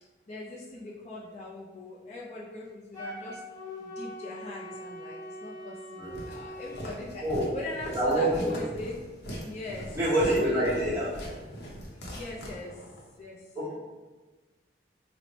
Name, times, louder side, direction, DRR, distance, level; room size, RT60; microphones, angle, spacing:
voice 1, 0.3-3.4 3.8-7.2 7.5-8.9 9.4-10.0 10.4-11.0 12.1-12.8 13.2-13.5, left 2 dB, 40° left, -4 dB, 0.4 m, -41 dB
Wind instrument woodwind instrument, 2.9-6.9, equal, 20° left, 1.0 m, -42 dB
Walk footsteps, 6.1-13.1, equal, 70° left, 0.7 m, -40 dB
voice 2, 7.9-8.5 9.9-11.1 13.5-13.7, right 1 dB, 15° right, -10 dB, 1.1 m, -26 dB
3.1 x 2.0 x 3.9 m, 1.3 s
head